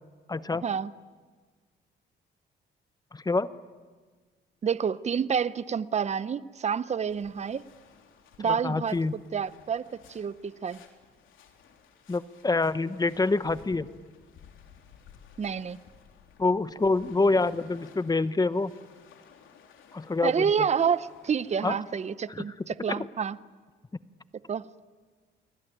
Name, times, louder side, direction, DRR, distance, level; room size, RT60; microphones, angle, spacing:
voice 1, 0.3-0.6 3.1-3.5 8.5-9.1 12.1-13.9 16.4-18.7 19.9-20.5 21.6-21.8 22.4-22.5 22.9-23.1, left 3 dB, 20° left, 14 dB, 0.9 m, -26 dB
voice 2, 4.6-7.6 8.4-10.8 15.4-15.8 20.2-23.4 24.5-24.7, right 7 dB, 35° right, 17 dB, 0.7 m, -28 dB
sound 1, 7.1-22.1, left 7 dB, 80° left, 3.6 m, -56 dB
29.5 x 20.0 x 9.1 m, 1.4 s
cardioid pair, 90°, 20 cm